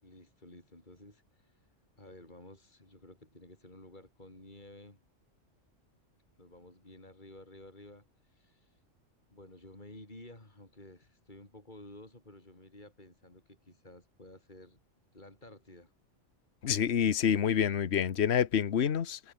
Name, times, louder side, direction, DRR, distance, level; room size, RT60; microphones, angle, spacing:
voice 1, 0.0-1.7 2.0-5.0 6.4-8.8 9.3-14.8 15.1-15.9, left 1 dB, 35° left, 5.6 m, -53 dB
voice 2, 16.6-19.2, left 8 dB, 60° left, 1.3 m, -27 dB
omnidirectional pair, 1.3 m